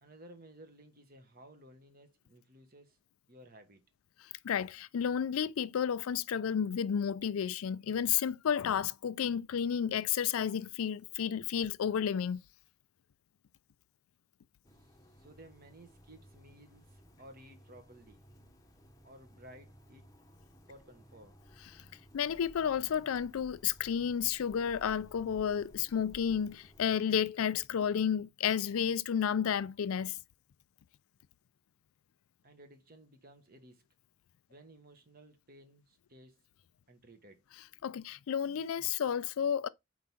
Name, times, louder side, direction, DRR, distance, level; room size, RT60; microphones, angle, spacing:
voice 1, 0.0-3.0 3.3-3.8 14.8-18.2 19.0-20.1 20.7-21.4 32.4-33.8 34.5-36.5 36.9-37.4, right 1 dB, 45° right, 1.3 m, -56 dB
voice 2, 4.4-12.4 21.8-21.9 22.1-30.2 37.8-39.7, left 8 dB, 80° left, 0.4 m, -31 dB
sound 1, 14.6-27.0, equal, 15° left, 0.8 m, -58 dB
4.8 x 3.7 x 5.7 m
head